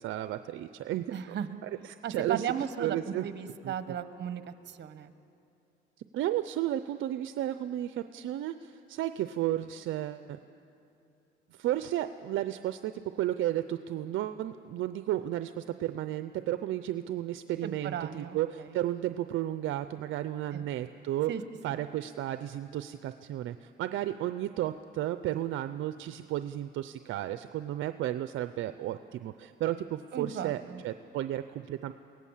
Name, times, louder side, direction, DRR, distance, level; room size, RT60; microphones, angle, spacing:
voice 1, 0.0-1.4 1.6-2.5 2.8-3.2 3.6-4.0 6.1-10.4 11.5-21.3 21.6-31.9, right 13 dB, 80° right, 11 dB, 0.6 m, -33 dB
voice 2, 1.1-1.6 2.0-5.1 17.6-18.4 20.5-20.7 21.3-21.4 21.7-21.8 30.1-30.8, right 8 dB, 60° right, 11 dB, 1.2 m, -35 dB
25.0 x 17.5 x 7.4 m, 2.7 s
cardioid pair, 90°, 20 cm